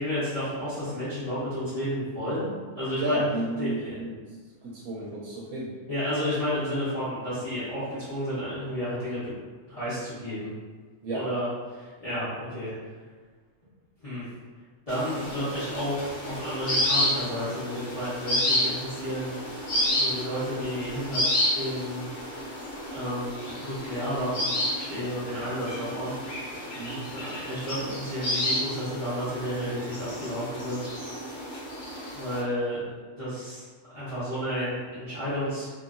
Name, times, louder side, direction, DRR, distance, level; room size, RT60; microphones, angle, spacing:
voice 1, 0.0-3.2 3.6-4.0 5.9-9.3 9.7-10.5 11.1-12.7 14.0-14.2 14.9-19.4 19.9-21.2 21.5-22.6 22.9-26.1 26.4-26.7 27.1-30.9 32.1-32.8 33.2-35.7, equal, 30° left, -13 dB, 0.9 m, -32 dB
voice 2, 3.0-4.2 4.6-5.7 11.0-11.3 26.7-27.1, right 2 dB, 80° right, -5 dB, 1.1 m, -31 dB
sound 1, 14.9-32.4, left 1 dB, 65° left, 1.1 m, -31 dB
2.8 x 2.5 x 2.5 m, 1.4 s
omnidirectional pair, 1.6 m